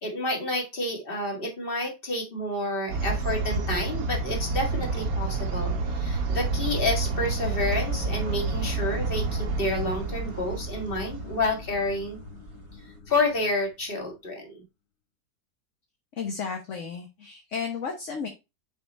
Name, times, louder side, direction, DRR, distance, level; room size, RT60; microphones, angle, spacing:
voice 1, 0.0-12.2 13.1-14.6, left 2 dB, 30° left, 2 dB, 2.1 m, -29 dB
sound 1, 2.9-12.7, right 3 dB, 60° right, 1.4 m, -29 dB
sound 2, 5.5-14.3, left 7 dB, 65° left, 1.7 m, -45 dB
voice 2, 16.2-18.3, left 5 dB, 50° left, 3 dB, 1.3 m, -33 dB
6.6 x 4.3 x 4.2 m, 0.25 s
omnidirectional pair, 1.8 m